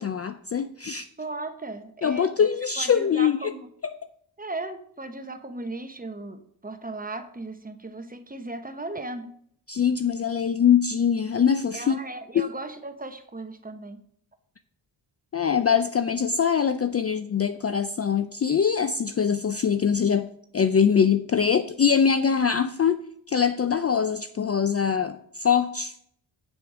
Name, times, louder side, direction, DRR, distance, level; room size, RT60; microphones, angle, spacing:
voice 1, 0.0-1.1 2.0-3.5 9.7-12.0 12.3-12.4 15.3-20.3 20.5-23.0 23.3-25.9, left 7 dB, 35° left, 10 dB, 0.4 m, -23 dB
voice 2, 1.2-2.5 2.8-3.7 4.4-9.3 11.7-14.0, right 2 dB, 20° right, 8 dB, 0.8 m, -37 dB
6.7 x 6.3 x 5.0 m, 0.66 s
cardioid pair, 75°, 47 cm